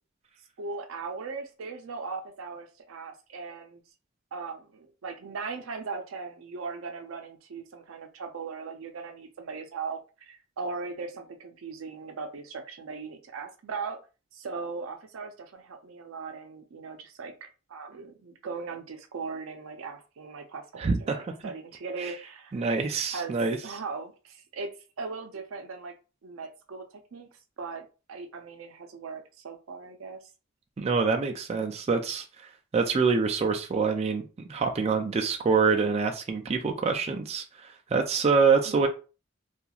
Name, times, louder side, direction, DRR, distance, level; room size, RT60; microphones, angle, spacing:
voice 1, 0.6-3.8 4.3-14.0 14.3-22.6 23.1-26.0 26.2-27.3 27.6-30.3 38.6-38.9, right 4 dB, 85° right, 6 dB, 0.5 m, -39 dB
voice 2, 20.8-21.2 22.0-22.1 22.5-23.6 30.8-32.2 32.7-38.9, right 4 dB, 30° right, 4 dB, 0.3 m, -25 dB
2.8 x 2.4 x 2.3 m, 0.33 s
head